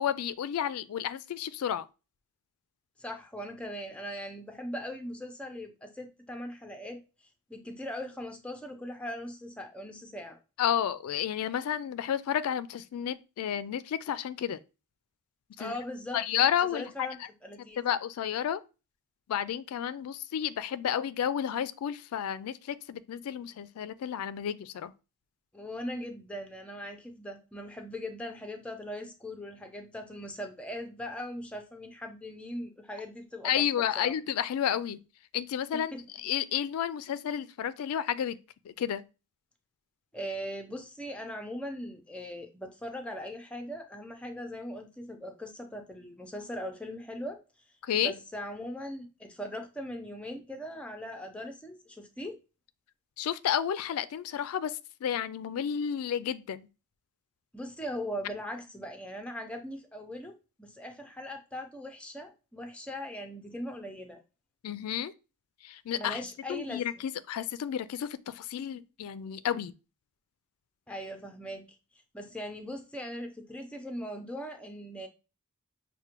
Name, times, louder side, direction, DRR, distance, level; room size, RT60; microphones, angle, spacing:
voice 1, 0.0-1.8 10.6-14.6 15.6-15.8 16.1-17.1 17.8-18.6 19.3-24.9 33.4-35.0 35.3-38.4 38.7-39.0 47.8-48.1 53.2-56.7 64.6-65.1 65.6-66.2 66.5-69.7, left 9 dB, 80° left, 0.3 m, -31 dB
voice 2, 3.0-7.0 7.5-10.4 15.6-16.4 16.7-17.8 25.5-33.7 34.0-34.1 35.7-36.0 40.1-47.4 48.0-52.4 57.5-64.2 66.0-67.0 70.9-71.6 72.1-75.1, equal, 5° left, 0.5 m, -40 dB
5.9 x 2.2 x 2.9 m
head